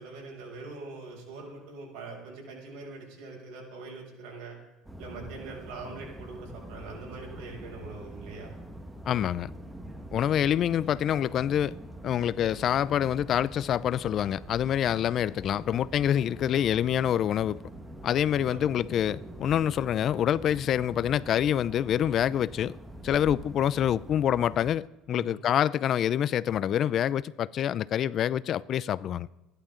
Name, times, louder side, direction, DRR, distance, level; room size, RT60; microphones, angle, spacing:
voice 1, 0.0-4.6 5.0-8.5 18.3-18.6 25.1-25.4, right 3 dB, 85° right, 6.7 m, -43 dB
sound 1, 4.8-24.7, right 1 dB, 10° right, 1.6 m, -44 dB
voice 2, 9.1-9.5 10.1-11.7 12.0-17.6 18.0-22.8 23.0-29.3, left 10 dB, 50° left, 0.5 m, -26 dB
27.5 x 11.5 x 3.8 m
supercardioid pair, 105°, 0 cm